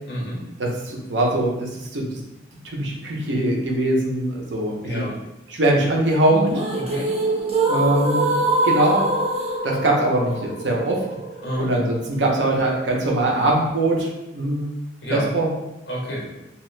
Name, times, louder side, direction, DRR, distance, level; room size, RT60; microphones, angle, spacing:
voice 1, 0.1-0.4 4.8-5.2 6.7-7.1 11.4-11.7 15.0-15.3 15.9-16.3, equal, 65° left, -4 dB, 1.0 m, -28 dB
voice 2, 0.6-2.2 2.6-5.0 5.5-6.5 7.7-8.3 8.6-9.1 9.6-11.1 11.6-14.7 15.1-15.5, right 1 dB, 80° right, -1 dB, 0.7 m, -22 dB
sound 1, 6.3-12.3, right 2 dB, 35° right, 0.5 m, -24 dB
2.8 x 2.3 x 3.2 m, 0.95 s
head